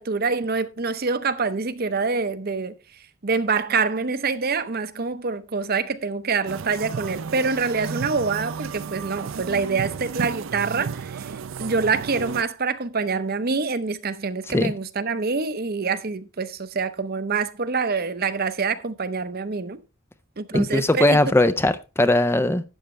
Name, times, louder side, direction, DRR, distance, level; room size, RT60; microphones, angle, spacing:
voice 1, 0.0-2.7 3.2-11.3 11.6-19.8 20.4-21.2, right 4 dB, 45° right, 0.7 m, -26 dB
sound 1, 6.5-12.4, right 6 dB, 70° right, 0.5 m, -33 dB
voice 2, 20.5-22.6, left 1 dB, 10° left, 0.4 m, -19 dB
12.0 x 8.7 x 3.2 m
head